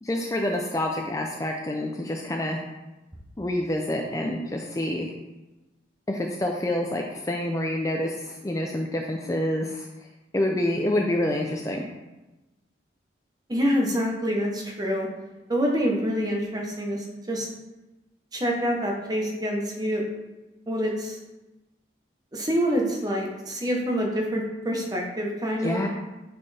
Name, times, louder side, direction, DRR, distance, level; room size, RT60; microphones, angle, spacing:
voice 1, 0.0-2.6 3.4-5.1 6.1-9.9 10.3-11.9 25.6-25.9, left 1 dB, 15° left, 1 dB, 0.4 m, -27 dB
voice 2, 13.5-15.1 15.5-17.5 18.3-20.1 20.7-21.2 22.3-25.8, equal, 20° right, 0 dB, 1.0 m, -26 dB
8.6 x 4.3 x 3.4 m, 1.1 s
head